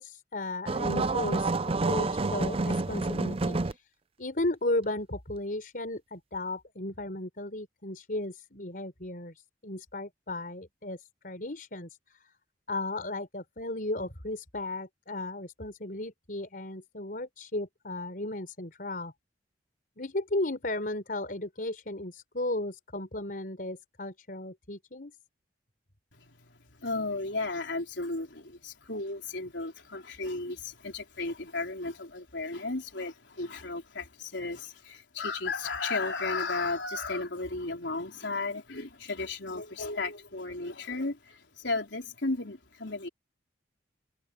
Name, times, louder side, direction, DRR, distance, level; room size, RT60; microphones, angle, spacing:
voice 1, 0.0-1.5 1.8-3.9 4.2-12.2 12.7-19.1 20.0-25.1, left 2 dB, 50° left, 4.6 m, -35 dB
sound 1, 0.7-3.7, right 3 dB, 30° right, 0.5 m, -28 dB
voice 2, 26.1-43.1, left 3 dB, 75° left, 3.8 m, -34 dB
head